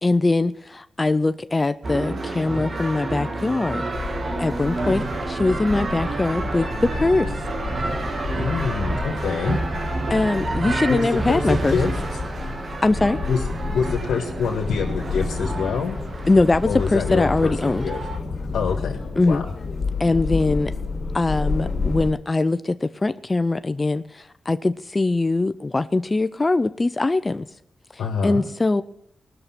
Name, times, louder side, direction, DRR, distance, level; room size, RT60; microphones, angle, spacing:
voice 1, 0.0-3.8 4.4-7.3 10.1-11.8 12.8-13.2 16.3-17.8 19.2-19.4 20.0-20.7 21.1-27.5 28.2-28.8, left 2 dB, 30° left, 12 dB, 0.4 m, -22 dB
sound 1, 1.8-18.2, right 2 dB, 50° right, 1.7 m, -29 dB
sound 2, 3.9-22.1, left 4 dB, 60° left, 2.4 m, -30 dB
voice 2, 8.3-9.6 10.9-11.9 13.3-13.4 13.7-16.0 16.7-18.0 18.5-19.0 19.3-19.4 28.0-28.4, left 5 dB, 90° left, 0 dB, 1.6 m, -25 dB
19.0 x 6.6 x 5.8 m, 0.71 s
cardioid pair, 65°, 0 cm